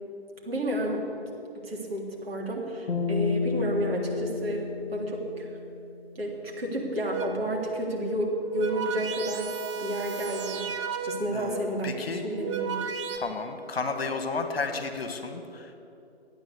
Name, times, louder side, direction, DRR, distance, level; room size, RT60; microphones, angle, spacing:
voice 1, 0.4-1.0 1.5-5.5 6.1-9.5 9.8-10.7 11.0-12.8, equal, 65° right, -2 dB, 3.4 m, -31 dB
sound 1, 2.9-6.2, left 4 dB, 5° left, 0.5 m, -31 dB
sound 2, 7.1-7.6 8.3-11.5 12.2-13.2, right 7 dB, 30° right, 0.9 m, -34 dB
voice 2, 11.3-12.3 13.1-15.7, left 4 dB, 65° left, 7 dB, 1.7 m, -32 dB
13.0 x 9.1 x 8.2 m, 2.7 s
figure-of-eight pair, 145°, 32 cm